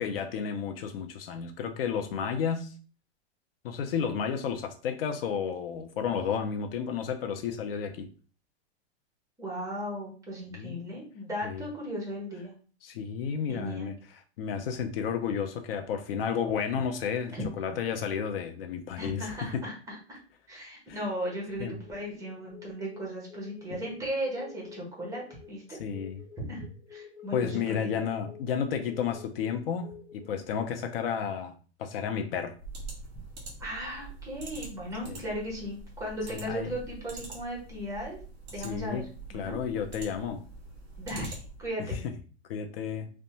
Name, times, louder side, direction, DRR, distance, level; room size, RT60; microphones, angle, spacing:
voice 1, 0.0-2.7 3.6-8.1 10.5-10.8 11.4-11.7 12.8-13.9 14.4-19.6 20.9-21.0 21.6-21.8 25.7-26.2 27.3-32.6 35.1-35.2 36.3-36.7 38.6-39.0 39.3-40.5 41.8-42.1 42.5-43.1, left 7 dB, 60° left, 0.5 m, -32 dB
voice 2, 9.4-12.5 13.5-13.9 17.3-17.5 19.0-20.2 20.5-25.8 26.4-26.6 26.9-27.9 33.6-38.2 38.5-39.6 41.0-42.0, equal, 10° right, 0.8 m, -36 dB
sound 1, 21.3-30.7, left 8 dB, 85° left, 1.0 m, -51 dB
sound 2, 32.6-41.7, right 2 dB, 30° right, 1.3 m, -44 dB
2.6 x 2.2 x 2.7 m
hypercardioid pair, 140°, 33 cm